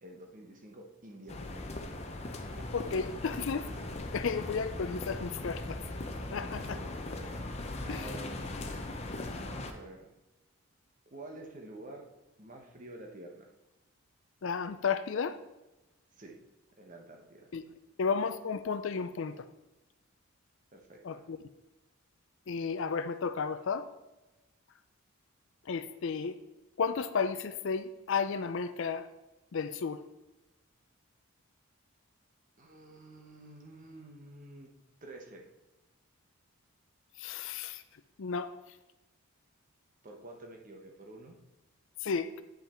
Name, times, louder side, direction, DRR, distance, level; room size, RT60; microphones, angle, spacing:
voice 1, 0.0-2.1 2.4-3.0 6.4-7.0 7.8-8.4 9.4-10.1 11.1-12.1 12.4-13.5 16.1-16.4 16.8-17.5 20.7-21.3 32.6-34.7 35.0-35.5 40.0-41.4, right 1 dB, 35° right, 2 dB, 1.1 m, -49 dB
sound 1, 1.3-9.7, left 2 dB, 30° left, 0.7 m, -39 dB
voice 2, 2.7-3.7 4.1-5.8 6.3-6.8 7.9-8.1 14.4-15.4 17.5-17.7 18.0-19.5 21.0-21.4 22.5-23.9 25.7-26.4 26.8-29.1 29.5-30.0 37.2-37.8 38.2-38.5 42.0-42.4, left 5 dB, 55° left, 12 dB, 0.4 m, -33 dB
9.1 x 5.6 x 4.4 m, 1.0 s
head